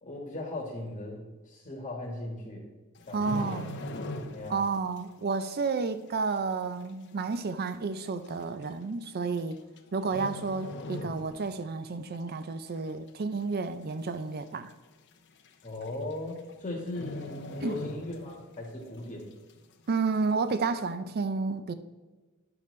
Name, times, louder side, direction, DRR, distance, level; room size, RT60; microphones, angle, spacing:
voice 1, 0.0-2.6 3.1-3.7 4.3-4.6 15.6-19.3, left 1 dB, 30° left, 1.4 m, -38 dB
sound 1, 3.0-4.7 5.0-5.2 5.8-5.9 6.8-6.9 7.1-7.2 8.0-8.3 9.4-9.8 10.1-11.6 12.0-12.2 12.7-13.2 13.5-13.6 13.9-14.0 14.4-14.5 15.5-15.6 15.8-16.1 16.4-16.5 16.9-18.6 18.9-19.0, left 1 dB, 55° left, 0.8 m, -39 dB
voice 2, 3.1-3.7 4.5-9.6 9.9-14.7 17.6-17.8 19.9-21.7, right 4 dB, 45° right, 0.5 m, -31 dB
10.5 x 6.7 x 3.2 m
head